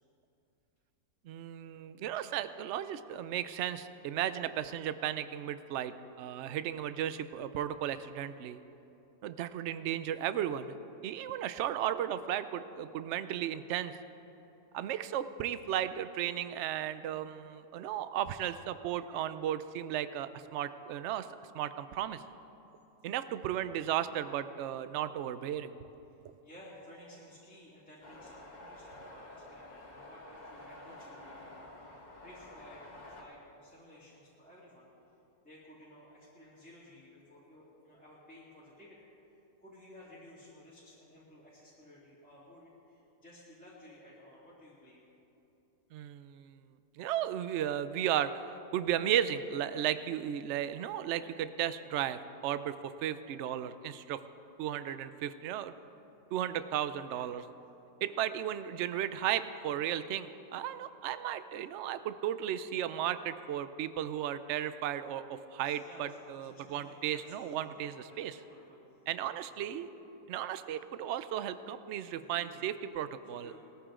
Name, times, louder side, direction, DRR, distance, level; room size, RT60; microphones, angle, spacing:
voice 1, 1.3-8.6 9.2-10.7 11.0-13.9 14.7-21.3 21.5-22.2 23.0-25.8 45.9-46.6 47.0-48.3 48.7-54.2 54.6-55.7 56.3-57.4 58.0-68.4 69.1-69.9 70.3-73.6, right 11 dB, 80° right, 12 dB, 0.6 m, -35 dB
voice 2, 26.1-34.9 35.4-39.0 39.6-45.0 57.1-57.3 65.6-69.0 69.4-69.8 72.1-72.8 73.3-73.6, left 1 dB, 5° left, -9 dB, 2.3 m, -56 dB
sound 1, 28.0-33.2, left 1 dB, 25° left, 1.5 m, -50 dB
19.5 x 14.0 x 3.7 m, 2.9 s
omnidirectional pair, 1.8 m